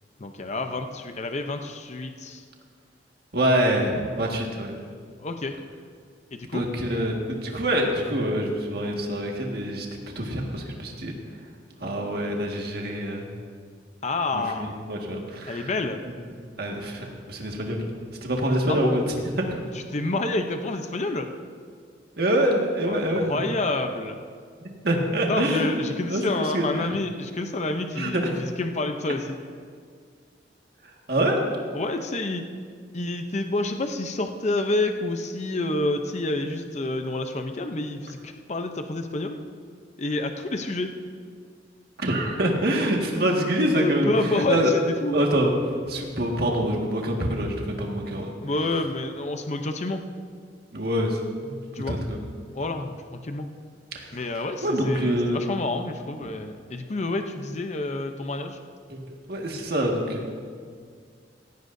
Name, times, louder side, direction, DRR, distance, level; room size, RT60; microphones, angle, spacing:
voice 1, 0.2-2.4 5.2-5.5 6.3-6.6 14.0-14.8 15.5-16.0 18.7-19.0 19.7-21.3 22.9-24.2 25.3-29.3 31.7-32.4 32.9-39.4 40.0-40.9 43.7-45.2 48.4-50.0 51.7-52.0 52.5-53.5 54.1-58.6, left 2 dB, 40° left, 6 dB, 0.7 m, -28 dB
voice 2, 3.3-4.7 6.4-9.9 10.2-11.1 11.8-13.3 14.3-15.7 16.6-17.8 18.2-19.6 22.2-23.4 24.8-25.8 26.1-26.9 27.9-28.4 31.1-31.4 42.0-44.7 45.1-45.5 45.9-48.3 50.7-51.5 51.9-52.2 53.9-54.1 54.6-55.4 58.9-59.0 59.3-60.3, right 1 dB, 60° right, 0 dB, 1.8 m, -25 dB
16.5 x 16.0 x 2.7 m, 2.1 s
head